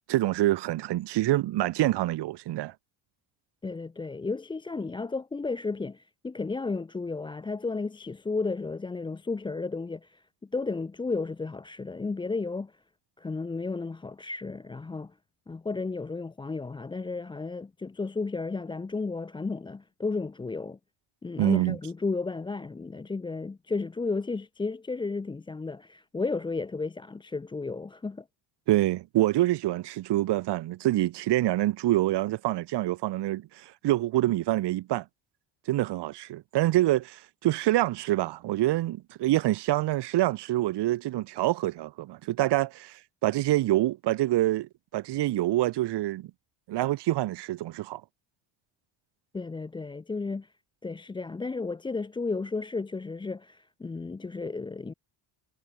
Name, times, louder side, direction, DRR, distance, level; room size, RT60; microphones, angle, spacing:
voice 1, 0.0-2.7 21.4-21.8 28.7-35.0 35.7-46.3 46.7-48.0, right 15 dB, 55° right, 1.6 m, -26 dB
voice 2, 3.6-10.2 10.5-12.8 13.2-15.1 15.5-20.8 21.2-28.3 49.3-50.5 50.8-54.9, left 3 dB, 10° left, 0.5 m, -33 dB
cardioid pair, 160°, 49 cm